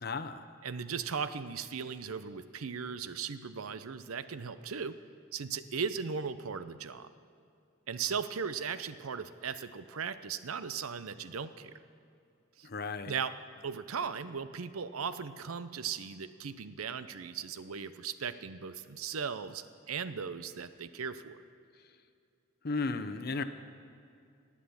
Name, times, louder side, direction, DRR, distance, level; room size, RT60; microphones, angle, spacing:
voice 1, 0.0-0.5 12.6-13.1 22.6-23.4, left 3 dB, 45° left, 10 dB, 0.7 m, -34 dB
voice 2, 0.6-5.0 5.3-7.1 7.9-11.7 12.6-12.7 13.0-13.3 13.6-21.4, right 6 dB, 90° right, 13 dB, 0.7 m, -37 dB
19.0 x 8.6 x 7.1 m, 2.5 s
head